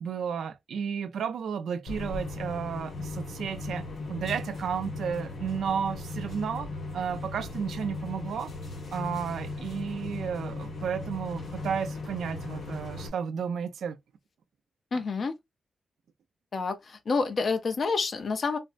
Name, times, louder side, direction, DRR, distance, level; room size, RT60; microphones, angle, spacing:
voice 1, 0.0-6.7 6.9-8.5 8.9-14.0, right 7 dB, 90° right, 0.5 m, -33 dB
sound 1, 1.9-13.1, left 3 dB, 80° left, 1.5 m, -37 dB
voice 2, 14.9-15.3 16.5-18.6, left 4 dB, 50° left, 0.6 m, -28 dB
4.2 x 2.1 x 2.4 m
wide cardioid pair, 120°, 0 cm